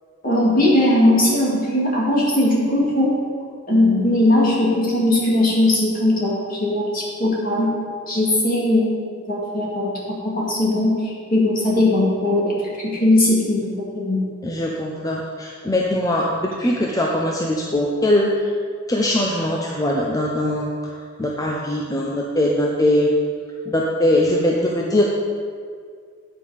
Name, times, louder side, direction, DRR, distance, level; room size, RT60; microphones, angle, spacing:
voice 1, 0.2-3.1 3.7-7.7 8.1-14.2, left 1 dB, 40° left, -4 dB, 2.3 m, -19 dB
voice 2, 14.4-18.5 18.9-20.9 21.2-23.1 23.7-25.1, left 1 dB, 15° left, -2 dB, 0.6 m, -21 dB
9.0 x 5.4 x 6.5 m, 2.1 s
head